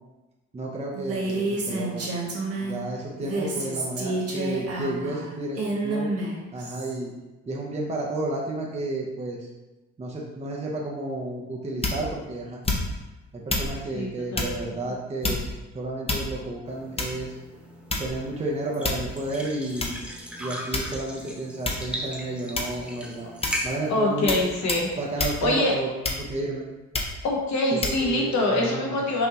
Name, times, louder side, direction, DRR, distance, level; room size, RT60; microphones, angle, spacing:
voice 1, 0.5-2.1 2.6-6.1 6.5-7.1 7.5-9.4 10.0-12.6 13.3-17.4 18.0-20.0 20.4-23.3 23.6-24.3 25.0-26.6 27.7-29.2, right 2 dB, 20° right, -2 dB, 0.6 m, -32 dB
Female speech woman speaking, 0.9-2.8 3.2-6.9, right 2 dB, 55° right, 1.1 m, -29 dB
sound 1, 11.8-12.2 12.6-13.1 13.5-13.7 14.3-14.6 15.2-15.6 16.1-16.5 17.0-17.3 17.9-18.3 18.8-19.2 19.8-20.0 20.7-21.2 21.6-21.9 22.5-22.9 23.4-23.7 24.3-24.4 24.7-24.9 25.2-25.4 26.0-26.4 26.9-27.2 27.8-28.0, left 2 dB, 20° left, 0.7 m, -28 dB
voice 2, 13.9-14.7 23.9-24.9 25.2-25.7 27.2-29.3, left 2 dB, 65° left, -1 dB, 1.2 m, -25 dB
sound 2, 16.7-25.2, equal, 5° right, 1.1 m, -38 dB
5.5 x 2.7 x 2.9 m, 1.1 s
cardioid pair, 90°, 30 cm